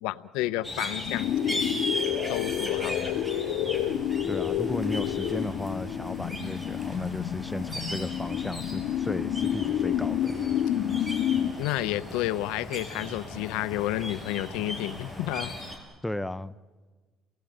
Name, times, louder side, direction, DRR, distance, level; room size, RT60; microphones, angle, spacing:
voice 1, 0.0-1.8 2.3-3.2 11.6-15.5, left 16 dB, 90° left, 14 dB, 0.7 m, -31 dB
sound 1, 0.6-15.8, equal, 10° right, 6.0 m, -38 dB
sound 2, 1.0-11.5, left 10 dB, 70° left, 1.3 m, -29 dB
voice 2, 4.3-10.4 16.0-16.6, left 1 dB, 5° left, 13 dB, 0.7 m, -35 dB
29.0 x 19.0 x 8.0 m, 1.4 s
cardioid pair, 100°, 0 cm